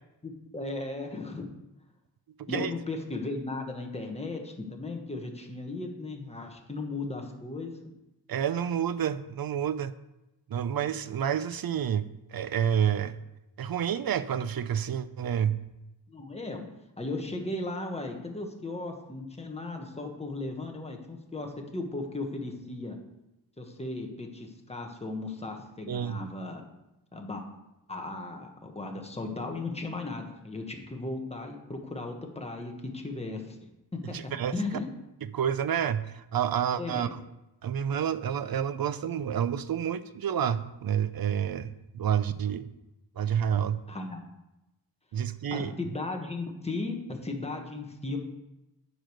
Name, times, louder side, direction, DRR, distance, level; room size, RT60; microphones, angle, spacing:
voice 1, 0.2-1.5 2.5-7.8 16.1-16.6 17.0-23.0 23.6-26.6 27.1-27.4 27.9-33.6 34.5-34.9 36.8-37.1 43.9-44.2 45.5-48.2, left 2 dB, 15° left, 2 dB, 1.3 m, -36 dB
voice 2, 8.3-9.9 10.5-13.1 13.6-15.6 25.9-26.2 34.1-34.5 35.3-37.1 37.6-41.7 41.9-42.7 43.2-43.8 45.1-45.7, right 8 dB, 55° right, 13 dB, 0.6 m, -29 dB
10.0 x 5.0 x 6.4 m, 0.95 s
wide cardioid pair, 140°, 44 cm